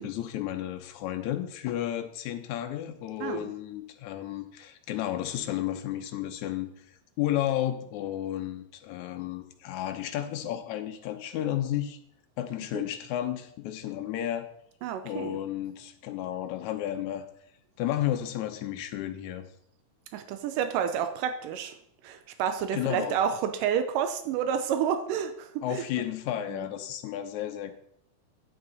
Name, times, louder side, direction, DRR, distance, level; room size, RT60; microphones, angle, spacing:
voice 1, 0.0-6.7 7.2-12.0 12.4-14.5 15.0-17.2 17.8-19.5 22.7-23.2 25.6-27.7, left 12 dB, 70° left, 7 dB, 2.0 m, -32 dB
voice 2, 3.2-3.5 12.7-12.8 14.8-15.4 20.1-21.8 22.0-25.8 26.5-26.6, right 8 dB, 85° right, 9 dB, 2.2 m, -30 dB
9.7 x 8.5 x 4.0 m, 0.69 s
omnidirectional pair, 3.8 m